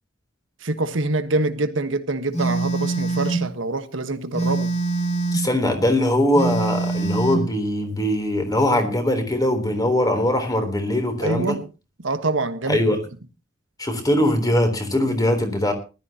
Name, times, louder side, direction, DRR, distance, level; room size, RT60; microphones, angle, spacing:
voice 1, 0.6-4.7 11.2-11.7 12.0-12.8, right 2 dB, 70° right, 1.4 m, -25 dB
Telephone, 2.3-3.5 4.3-5.5 6.3-7.5, right 3 dB, 35° left, 2.9 m, -24 dB
voice 2, 5.3-11.6 12.7-13.0 13.8-15.7, left 1 dB, 20° left, 3.6 m, -21 dB
20.0 x 13.0 x 2.9 m
head